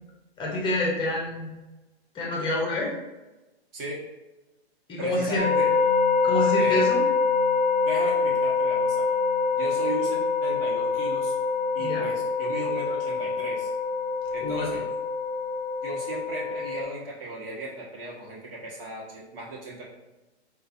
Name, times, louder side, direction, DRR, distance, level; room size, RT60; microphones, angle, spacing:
voice 1, 0.4-1.5 2.1-2.9 4.9-5.5 6.2-7.0 11.8-12.0 14.4-14.7, left 1 dB, 15° left, -3 dB, 0.8 m, -27 dB
voice 2, 5.0-5.7 6.6-6.9 7.8-9.0 9.5-11.4 11.7-13.7 14.3-14.8 15.8-19.9, right 2 dB, 55° right, -4 dB, 1.4 m, -36 dB
sound 1, 5.4-16.8, left 4 dB, 15° right, 0.6 m, -25 dB
4.4 x 2.5 x 2.6 m, 1.1 s
hypercardioid pair, 125°, 33 cm